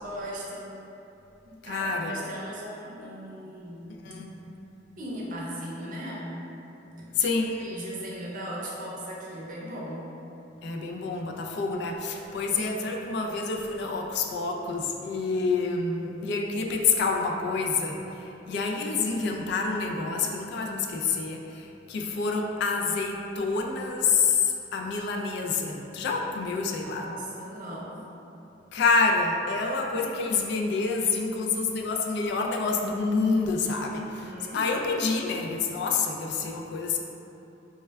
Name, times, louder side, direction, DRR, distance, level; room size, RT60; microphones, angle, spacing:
voice 1, 0.0-0.8 1.4-4.0 5.0-6.5 7.3-10.1 10.6-10.7 26.8-28.0 29.5-30.1 33.9-34.7, equal, 45° right, -5 dB, 0.6 m, -38 dB
voice 2, 1.6-2.1 4.0-4.3 7.2-7.6 10.6-27.1 28.7-37.0, left 4 dB, 65° left, 1 dB, 0.3 m, -27 dB
3.2 x 2.2 x 3.3 m, 2.9 s
head